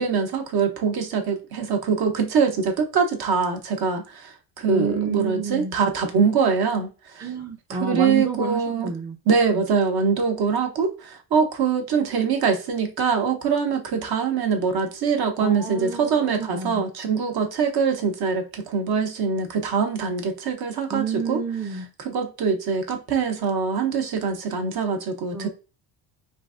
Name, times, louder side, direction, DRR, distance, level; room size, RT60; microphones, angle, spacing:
voice 1, 0.0-7.2 7.7-8.9 9.3-21.4 22.0-25.5, right 5 dB, 55° right, 0.8 m, -23 dB
voice 2, 4.7-5.7 7.2-9.2 9.5-9.6 15.4-16.8 20.9-21.9 25.3-25.5, right 5 dB, 10° right, 0.3 m, -29 dB
3.1 x 2.5 x 2.4 m
cardioid pair, 115°, 46 cm